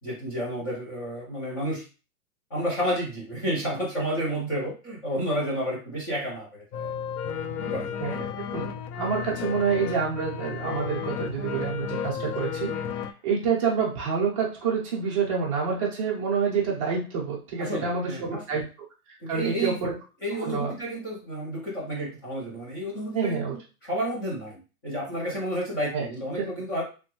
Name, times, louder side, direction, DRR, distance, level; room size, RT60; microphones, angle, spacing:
voice 1, 0.0-1.8 2.5-6.9 7.6-8.2 12.1-12.5 17.6-18.6 19.2-19.8 20.2-26.8, equal, 15° left, -6 dB, 0.5 m, -31 dB
sound 1, 6.7-13.1, left 7 dB, 85° left, 0.5 m, -33 dB
voice 2, 8.5-12.7 13.2-18.7 19.3-19.9 20.4-20.7 23.1-23.5 25.9-26.1 26.4-26.5, right 6 dB, 20° right, -5 dB, 0.7 m, -27 dB
3.2 x 2.2 x 2.9 m, 0.34 s
hypercardioid pair, 170°, 44 cm